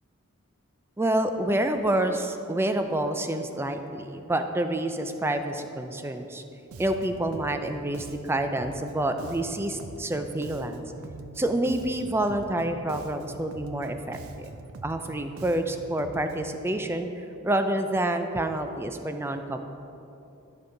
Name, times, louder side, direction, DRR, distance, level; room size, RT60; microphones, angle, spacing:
voice 1, 1.0-6.4 6.8-10.8 11.4-14.5 14.8-19.6, right 1 dB, 10° right, 7 dB, 0.4 m, -28 dB
Bass guitar, 6.7-16.6, right 3 dB, 80° right, 0.5 m, -44 dB
12.0 x 5.4 x 3.8 m, 2.9 s
head